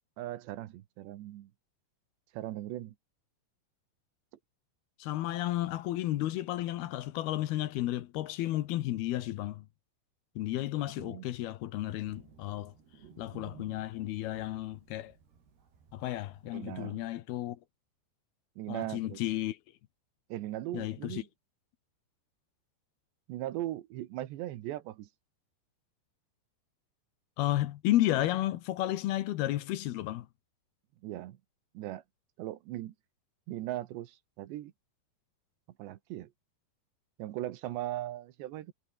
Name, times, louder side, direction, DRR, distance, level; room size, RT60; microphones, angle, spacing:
voice 1, 0.2-1.5 2.3-2.9 11.0-11.3 13.0-13.1 16.5-17.0 18.6-19.2 20.3-21.3 23.3-25.1 31.0-31.4 31.7-32.0 32.4-32.9 33.5-34.7 35.8-36.3 37.2-38.7, right 14 dB, 85° right, 3.5 m, -39 dB
voice 2, 5.0-9.7 10.4-12.7 13.2-15.1 15.9-17.6 18.7-19.6 20.7-21.2 27.4-30.3, left 14 dB, 70° left, 2.8 m, -32 dB
Thunder, 11.8-16.8, right 6 dB, 65° right, 7.1 m, -56 dB
omnidirectional pair, 5.0 m